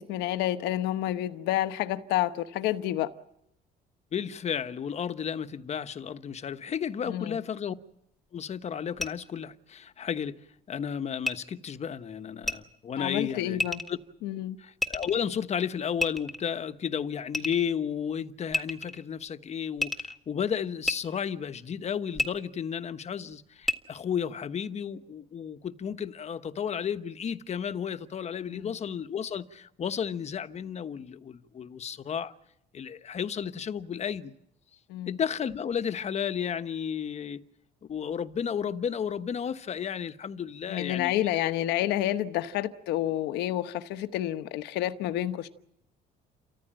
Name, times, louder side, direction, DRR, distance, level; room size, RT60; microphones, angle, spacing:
voice 1, 0.0-3.1 7.0-7.4 13.0-13.8 14.2-14.6 28.5-28.7 34.9-35.2 40.7-45.5, left 13 dB, 90° left, 1.1 m, -29 dB
voice 2, 4.1-7.7 8.3-10.4 10.7-13.6 13.9-14.0 14.6-32.3 32.7-34.3 35.1-37.4 37.9-41.1, left 7 dB, 40° left, 1.2 m, -33 dB
sound 1, 9.0-9.1 11.2-11.3 12.4-12.6 13.6-13.9 14.8-15.2 16.0-16.5 17.3-17.7 18.5-19.0 19.8-20.2 20.8-21.0 22.2-22.3 23.6-23.8, left 2 dB, ahead, 1.7 m, -29 dB
29.5 x 14.5 x 9.0 m
cardioid pair, 110°, 17 cm